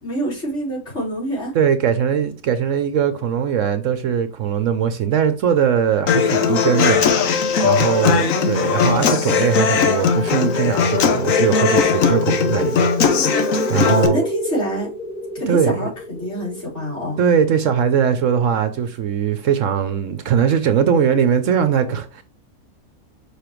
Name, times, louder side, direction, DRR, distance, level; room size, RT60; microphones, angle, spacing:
voice 1, 0.0-1.5 6.4-6.7 8.2-8.9 13.8-14.9 15.3-17.2, equal, 50° left, 4.2 m, -26 dB
voice 2, 1.5-7.1 7.6-14.3 15.5-15.9 17.2-22.2, right 8 dB, 65° right, 1.0 m, -20 dB
Human voice / Acoustic guitar, 6.1-14.1, left 6 dB, 65° left, 1.2 m, -18 dB
sound 1, 10.3-18.6, equal, 5° right, 0.8 m, -29 dB
6.8 x 4.8 x 3.0 m
omnidirectional pair, 1.5 m